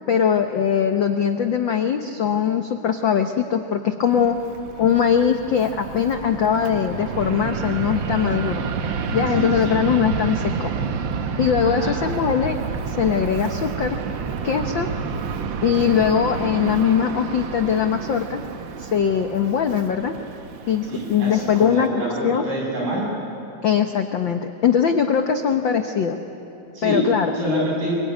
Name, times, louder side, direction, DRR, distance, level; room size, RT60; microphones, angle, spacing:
voice 1, 0.1-4.4 4.8-8.7 9.1-10.7 11.4-12.6 12.9-14.0 14.4-14.9 15.6-18.5 18.8-20.1 20.7-21.9 22.2-22.4 23.6-26.2 26.8-27.3, left 8 dB, 85° left, 6 dB, 1.0 m, -21 dB
Fixed-wing aircraft airplane, 4.0-21.9, right 6 dB, 65° right, 1.1 m, -29 dB
voice 2, 9.3-9.8 11.6-12.0 20.9-23.0 26.7-27.1 27.3-28.0, equal, 90° right, -3 dB, 8.9 m, -26 dB
25.0 x 23.5 x 9.7 m, 3.0 s
omnidirectional pair, 3.6 m